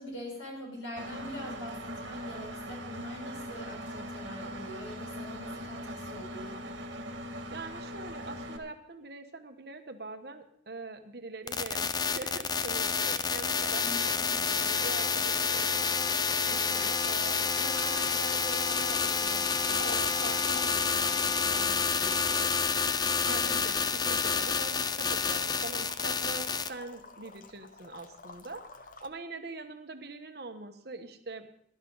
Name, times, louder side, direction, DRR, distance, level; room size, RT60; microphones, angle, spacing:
voice 1, 0.0-6.7 13.7-14.4 23.2-23.6, equal, 85° left, -2 dB, 5.9 m, -44 dB
Engine, 1.0-8.6, equal, 75° right, 1.8 m, -40 dB
voice 2, 7.5-13.9 14.3-16.0 16.5-22.5 23.3-31.5, right 3 dB, 55° right, 6 dB, 1.2 m, -43 dB
sound 1, 11.5-26.7, left 5 dB, 20° left, 0.4 m, -29 dB
sound 2, 18.8-29.1, left 3 dB, 45° left, 0.8 m, -48 dB
18.0 x 12.0 x 4.0 m, 0.68 s
head